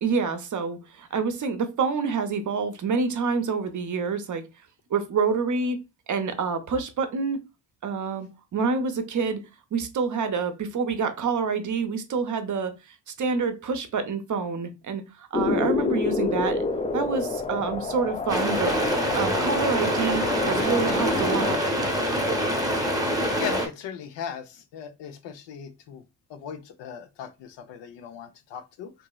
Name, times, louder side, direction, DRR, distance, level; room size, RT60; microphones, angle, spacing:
voice 1, 0.0-4.5 4.9-5.8 6.1-7.4 7.8-9.4 9.7-16.6 16.9-18.8 19.1-21.6, right 5 dB, 45° right, 0.7 m, -27 dB
sound 1, 15.3-21.6, left 3 dB, 20° left, 0.3 m, -28 dB
sound 2, 18.3-23.7, equal, 10° right, 0.8 m, -25 dB
voice 2, 23.4-26.0 26.3-28.9, left 7 dB, 85° left, 0.6 m, -38 dB
2.9 x 2.6 x 2.2 m
cardioid pair, 70°, 42 cm